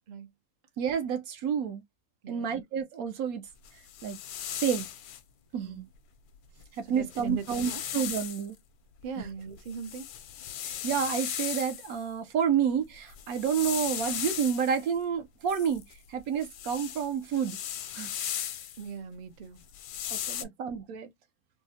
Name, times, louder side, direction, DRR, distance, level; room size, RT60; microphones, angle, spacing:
voice 1, 0.8-1.8 2.3-3.5 4.0-4.2 4.5-4.9 5.5-5.9 6.7-8.6 9.2-9.3 10.8-15.8 16.1-17.6 17.9-18.1 20.1-21.1, right 7 dB, 75° right, 1.1 m, -29 dB
voice 2, 2.2-2.6 5.6-5.9 6.9-7.8 9.0-10.1 18.8-19.6 20.0-20.5, right 6 dB, 60° right, 0.4 m, -40 dB
sound 1, 3.6-5.2 6.6-6.7 7.0-8.5 9.0-12.0 13.0-14.9 15.5-18.9 19.6-20.4, left 10 dB, 80° left, 1.1 m, -37 dB
3.5 x 2.1 x 2.7 m
omnidirectional pair, 1.6 m